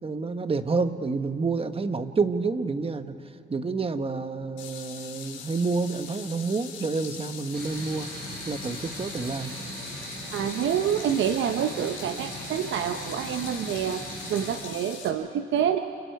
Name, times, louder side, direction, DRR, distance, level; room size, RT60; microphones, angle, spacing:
voice 1, 0.0-3.2 3.5-8.1 8.4-9.5, right 4 dB, 30° right, 8 dB, 1.3 m, -28 dB
sound 1, 4.6-15.1, left 8 dB, 90° left, 5.3 m, -42 dB
sound 2, 7.5-14.6, right 2 dB, 50° right, 7.4 m, -39 dB
voice 2, 10.3-14.0 14.3-15.8, right 9 dB, 70° right, 7 dB, 0.9 m, -27 dB
30.0 x 30.0 x 4.7 m, 2.5 s
cardioid pair, 90°, 20 cm